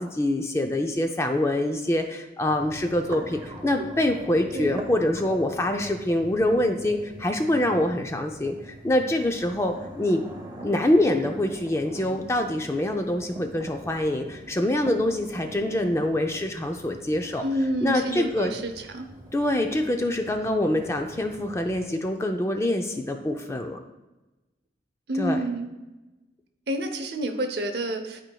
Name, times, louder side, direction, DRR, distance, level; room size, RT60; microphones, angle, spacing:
voice 1, 0.0-10.2 10.6-17.4 17.7-18.5 19.3-23.8 25.2-25.4, left 1 dB, 15° left, 5 dB, 0.4 m, -25 dB
sound 1, 2.5-21.9, right 1 dB, 20° right, 0.7 m, -43 dB
voice 2, 17.4-19.1 25.1-25.7 26.7-28.2, right 1 dB, 65° right, 6 dB, 0.7 m, -28 dB
11.5 x 4.5 x 2.3 m, 1.1 s
head